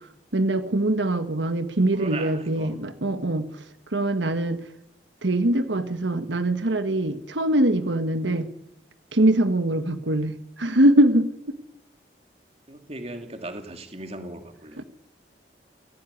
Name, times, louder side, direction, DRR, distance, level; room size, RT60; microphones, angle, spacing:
voice 1, 0.3-3.4 3.9-4.6 5.2-8.5 9.1-11.6 14.8-14.9, right 1 dB, 85° right, 9 dB, 1.3 m, -22 dB
voice 2, 1.9-2.7 4.4-4.6 12.7-14.8, right 2 dB, 35° right, 5 dB, 2.6 m, -38 dB
23.0 x 16.0 x 9.8 m, 0.87 s
head